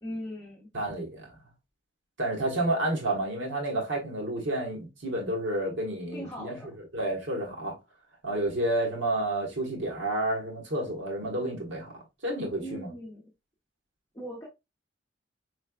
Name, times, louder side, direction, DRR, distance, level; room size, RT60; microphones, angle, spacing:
voice 1, 0.0-0.7 6.1-6.7 12.6-13.3 14.1-14.5, equal, 15° left, 0.9 m, -39 dB
voice 2, 0.7-1.3 2.2-7.8 8.2-11.9 12.2-12.9, right 1 dB, 70° right, 1.3 m, -30 dB
4.6 x 3.2 x 2.2 m
head